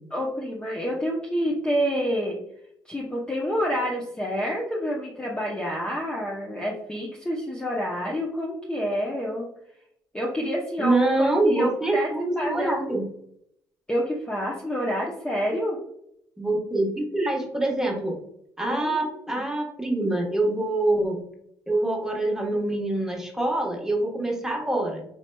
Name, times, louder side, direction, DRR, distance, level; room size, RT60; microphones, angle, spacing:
voice 1, 0.1-2.4 2.9-9.5 10.1-12.1 12.4-12.8 13.9-15.8 18.6-19.4, equal, 10° left, -3 dB, 0.8 m, -28 dB
voice 2, 10.8-13.0 16.4-18.1 18.6-21.2 21.7-25.1, right 2 dB, 5° right, -1 dB, 1.2 m, -25 dB
4.4 x 2.7 x 2.2 m, 0.73 s
supercardioid pair, 65°, 9 cm